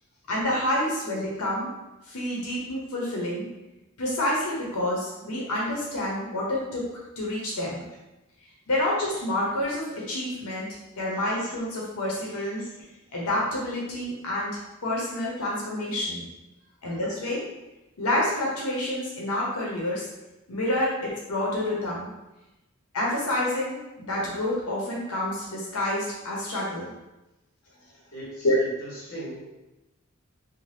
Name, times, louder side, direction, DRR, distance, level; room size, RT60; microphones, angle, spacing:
voice 1, 0.3-1.7 2.1-3.5 4.0-6.8 7.2-7.8 8.7-10.7 11.0-12.7 13.1-16.2 16.8-17.4 18.0-20.1 20.5-22.1 22.9-26.9 28.4-28.6, left 1 dB, 90° left, -4 dB, 0.7 m, -28 dB
voice 2, 28.1-29.5, right 1 dB, 45° left, -6 dB, 1.1 m, -40 dB
2.7 x 2.2 x 3.2 m, 1.0 s
head